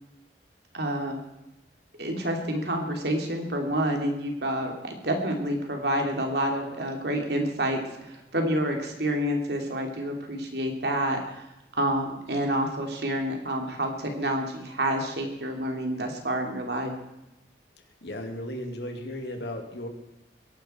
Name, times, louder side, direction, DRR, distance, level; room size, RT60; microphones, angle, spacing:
voice 1, 0.7-1.2 2.0-11.4 11.7-16.9, right 1 dB, 65° right, 3 dB, 2.9 m, -28 dB
voice 2, 18.0-19.9, left 1 dB, 70° left, 4 dB, 2.5 m, -35 dB
22.0 x 11.5 x 4.5 m, 0.93 s
head